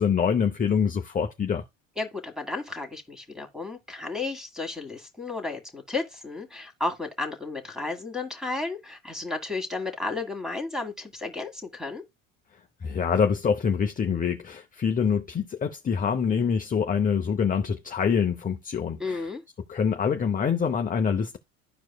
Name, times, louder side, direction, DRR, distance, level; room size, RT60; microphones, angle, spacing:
voice 1, 0.0-1.6 12.8-19.3 19.7-21.4, left 6 dB, 20° left, 0.6 m, -25 dB
voice 2, 2.0-12.0 19.0-19.4, left 3 dB, ahead, 1.7 m, -33 dB
12.0 x 4.7 x 2.3 m
supercardioid pair, 95°, 38 cm